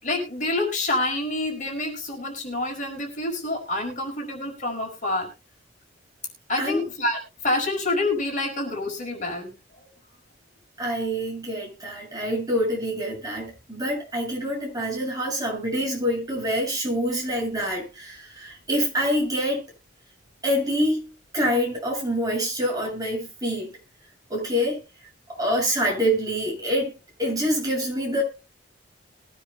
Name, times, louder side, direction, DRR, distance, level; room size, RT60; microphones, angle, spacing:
voice 1, 0.0-5.3 6.5-9.5 9.8-9.9, left 2 dB, 45° left, 1 dB, 5.2 m, -27 dB
voice 2, 10.8-19.7 20.4-23.8 24.3-24.8 25.3-26.9 27.2-28.2, equal, 20° right, -2 dB, 7.4 m, -26 dB
22.0 x 9.9 x 2.3 m, 0.29 s
head